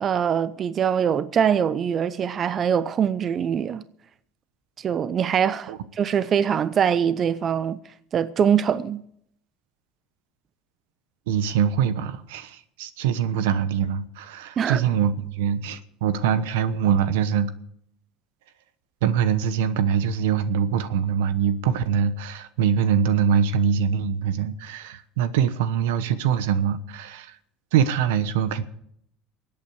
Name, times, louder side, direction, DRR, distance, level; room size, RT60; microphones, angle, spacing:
voice 1, 0.0-3.8 4.8-7.8 8.1-9.0 14.6-14.8, right 8 dB, 40° right, 0.6 m, -23 dB
voice 2, 11.3-17.5 19.0-27.4 27.7-28.6, right 8 dB, 85° right, 1.0 m, -23 dB
23.0 x 8.7 x 4.9 m
supercardioid pair, 105°, 0 cm